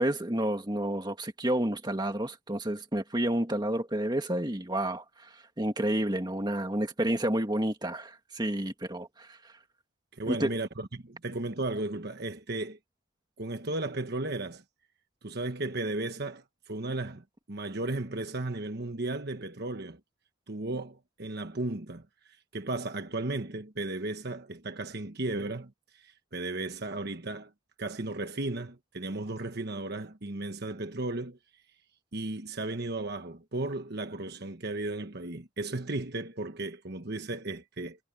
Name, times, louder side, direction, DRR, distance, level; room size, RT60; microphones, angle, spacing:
voice 1, 0.0-5.3 5.6-9.4 10.3-10.5, right 1 dB, 20° right, 1.9 m, -30 dB
voice 2, 10.1-12.8 13.4-14.6 15.2-20.0 20.5-27.5 27.8-31.4 32.1-38.0, right 2 dB, 50° right, 1.3 m, -35 dB
head